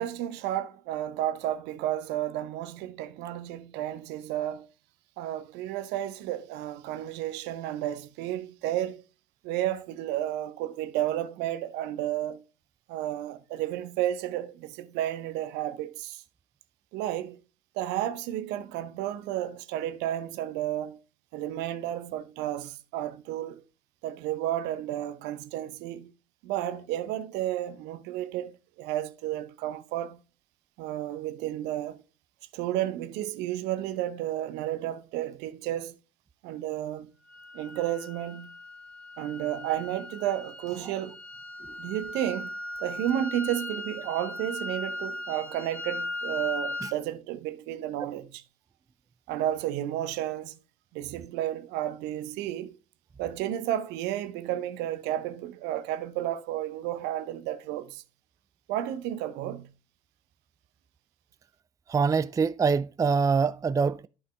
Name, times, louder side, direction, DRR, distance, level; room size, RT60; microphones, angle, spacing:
voice 1, 0.0-4.7 5.2-9.0 9.4-12.4 12.9-16.2 16.9-17.4 17.7-21.0 21.3-23.6 24.0-26.1 26.4-30.2 30.8-32.0 32.5-36.0 36.4-37.1 37.5-38.5 39.2-41.2 41.8-42.5 42.8-48.4 49.3-50.5 50.9-52.8 53.2-58.0 58.7-59.7, right 12 dB, 65° right, 0.8 m, -32 dB
sound 1, 37.3-47.0, left 2 dB, 10° left, 1.5 m, -38 dB
voice 2, 61.9-64.1, right 5 dB, 20° right, 0.4 m, -25 dB
12.5 x 5.6 x 2.3 m
hypercardioid pair, 50°, 19 cm